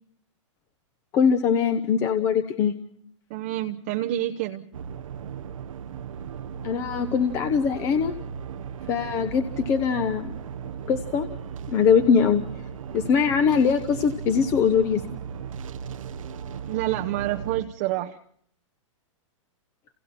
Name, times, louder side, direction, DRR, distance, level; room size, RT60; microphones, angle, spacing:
voice 1, 1.1-2.7 6.6-8.1 8.9-10.3 10.9-11.3 11.7-12.4 12.9-15.0, left 6 dB, 15° left, 1.0 m, -22 dB
voice 2, 3.3-4.6 16.7-18.2, right 14 dB, 25° right, 0.9 m, -28 dB
sound 1, 4.7-17.6, right 7 dB, 85° right, 1.2 m, -36 dB
29.5 x 29.0 x 4.3 m
hypercardioid pair, 180°, 17 cm